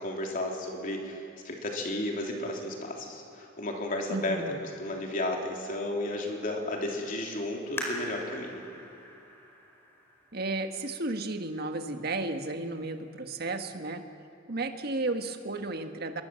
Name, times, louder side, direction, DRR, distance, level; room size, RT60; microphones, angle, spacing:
voice 1, 0.0-4.4 4.8-8.6, left 1 dB, 45° left, 1 dB, 3.5 m, -33 dB
voice 2, 4.1-4.6 10.3-14.0 14.5-16.2, right 2 dB, 50° right, 6 dB, 1.6 m, -33 dB
sound 1, 7.8-11.1 11.7-11.8 12.5-12.8 13.2-13.3, equal, 10° left, 4.8 m, -41 dB
26.0 x 22.0 x 7.7 m, 2.7 s
head